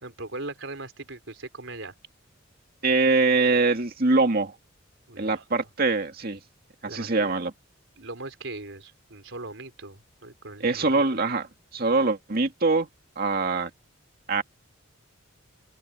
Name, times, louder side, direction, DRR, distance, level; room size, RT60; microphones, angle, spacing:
voice 1, 0.0-1.9 5.1-5.4 6.8-7.3 8.0-11.0, right 2 dB, 65° right, 4.2 m, -39 dB
voice 2, 2.8-4.5 5.2-6.4 6.8-7.5 10.6-11.5 11.7-12.9 13.2-13.7 14.3-14.4, right 3 dB, 45° right, 2.3 m, -23 dB
open air
head